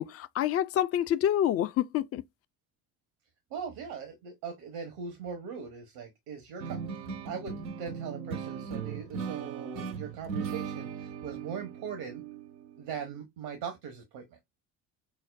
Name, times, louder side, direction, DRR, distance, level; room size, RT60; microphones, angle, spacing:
voice 1, 0.0-2.2, left 11 dB, 30° left, 0.4 m, -27 dB
voice 2, 3.5-12.2 12.8-14.4, right 6 dB, 70° right, 1.2 m, -40 dB
sound 1, 6.6-13.2, right 6 dB, 85° right, 0.8 m, -38 dB
5.9 x 2.0 x 2.4 m
hypercardioid pair, 60°, 50 cm